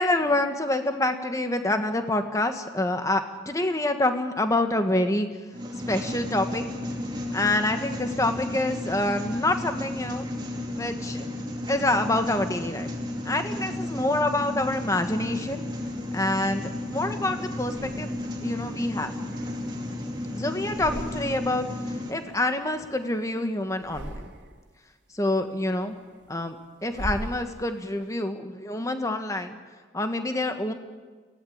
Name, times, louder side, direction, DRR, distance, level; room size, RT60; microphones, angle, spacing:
voice 1, 0.0-5.3 5.9-6.6 7.3-10.3 10.8-11.2 11.7-12.9 13.2-15.6 16.1-19.1 20.4-21.7 22.1-24.2 25.1-25.9 26.3-29.6 29.9-30.7, left 1 dB, 20° left, 7 dB, 1.5 m, -27 dB
sound 1, 5.5-22.1, left 1 dB, 25° right, 2.7 m, -33 dB
sound 2, 15.7-16.9 17.6-18.5 19.0-20.2 20.6-21.7 21.9-23.3 23.7-24.7 25.2-28.0, right 1 dB, 75° right, 2.4 m, -41 dB
24.0 x 17.0 x 8.8 m, 1.4 s
head